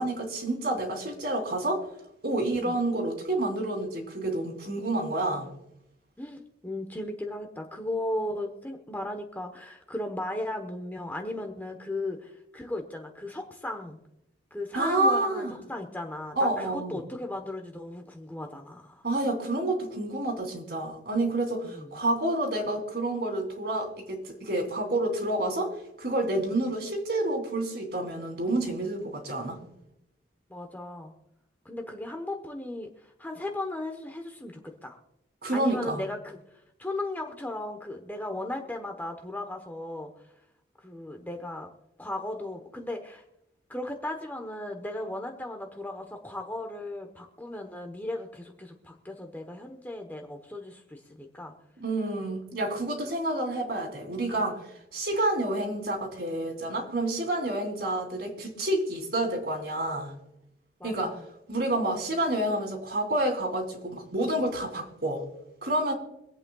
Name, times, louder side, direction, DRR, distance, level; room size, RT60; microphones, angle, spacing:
voice 1, 0.0-1.8 2.2-5.5 14.7-15.5 16.4-17.0 19.0-29.6 35.4-36.0 51.8-54.6 54.9-60.1 60.8-61.2 61.5-65.2 65.6-65.9, right 1 dB, 60° right, 2 dB, 3.0 m, -29 dB
voice 2, 6.2-14.0 14.5-19.0 21.7-22.0 30.5-31.1 31.6-35.0 35.5-36.4 36.8-40.1 40.8-41.7 42.0-43.2 43.7-51.5 60.8-61.3, left 1 dB, 10° left, 3 dB, 1.0 m, -36 dB
25.0 x 8.6 x 2.3 m, 0.85 s
head